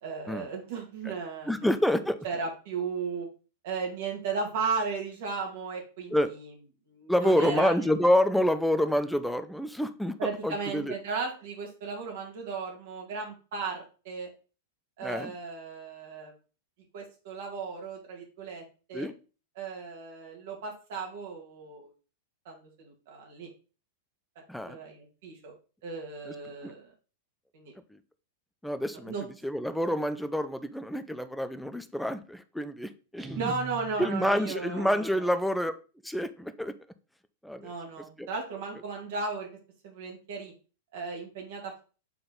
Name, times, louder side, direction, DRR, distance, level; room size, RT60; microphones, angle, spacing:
voice 1, 0.0-1.7 2.2-3.3 3.6-6.5 6.9-7.7 10.2-14.3 15.0-16.3 16.9-18.6 18.9-19.1 19.6-21.9 22.5-23.5 24.7-25.5 25.8-26.9 27.5-27.7 29.0-29.3 33.3-35.3 37.6-39.5 39.8-40.5 40.9-41.8, right 4 dB, 60° right, 1 dB, 2.1 m, -35 dB
voice 2, 1.5-2.2 6.1-6.3 7.1-10.9 15.0-15.3 18.9-19.1 24.5-24.8 26.6-26.7 28.6-29.1 29.4-33.5 34.0-35.7 36.0-36.7 37.4-37.7 38.2-38.3, equal, ahead, 10 dB, 0.6 m, -27 dB
Guitar, 33.2-34.4, right 3 dB, 15° right, 1.2 m, -42 dB
6.9 x 3.9 x 3.9 m, 0.35 s
hypercardioid pair, 100°, 0 cm